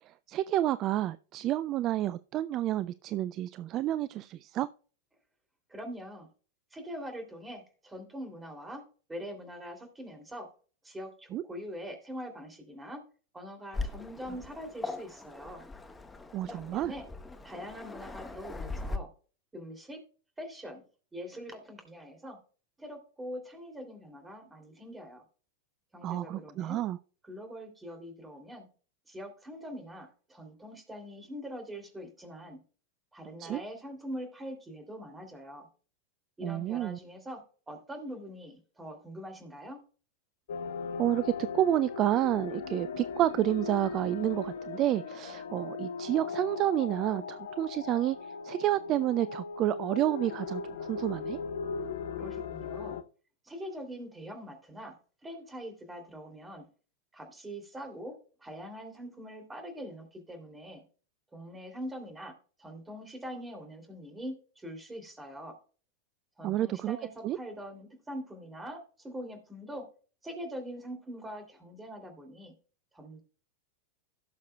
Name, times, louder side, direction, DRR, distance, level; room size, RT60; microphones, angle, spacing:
voice 1, 0.3-4.7 11.3-11.4 16.3-16.9 26.0-27.0 33.4-33.6 36.4-37.0 41.0-48.2 48.4-51.4 66.4-67.0 67.2-67.4, right 13 dB, 35° right, 0.3 m, -29 dB
voice 2, 5.7-6.3 6.7-8.8 9.1-10.5 10.8-13.0 13.3-15.6 16.5-17.0 17.4-19.1 19.5-20.0 20.4-20.8 21.1-22.4 22.8-25.2 25.9-26.8 27.2-28.7 29.1-32.6 33.1-35.7 36.4-37.4 37.7-39.8 52.1-53.0 53.5-54.9 55.2-56.7 57.1-58.1 58.4-60.8 61.3-62.3 62.6-65.5 66.4-69.9 70.2-72.5 72.9-73.2, equal, 10° right, 2.9 m, -43 dB
Waves surf, 13.7-19.0, left 3 dB, 10° left, 1.0 m, -40 dB
sound 1, 40.5-53.0, left 5 dB, 60° left, 0.6 m, -38 dB
17.0 x 6.5 x 2.3 m
figure-of-eight pair, 90°, 0 cm